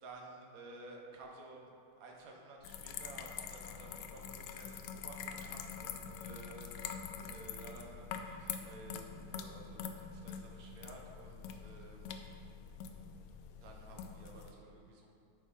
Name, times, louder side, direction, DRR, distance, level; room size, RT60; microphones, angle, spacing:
voice 1, 0.0-1.7 2.0-7.0 7.3-12.2 13.6-15.1, right 2 dB, 50° right, -1 dB, 1.3 m, -53 dB
sound 1, 2.6-14.5, left 7 dB, 85° left, 1.5 m, -45 dB
10.5 x 4.8 x 4.2 m, 2.6 s
omnidirectional pair, 2.4 m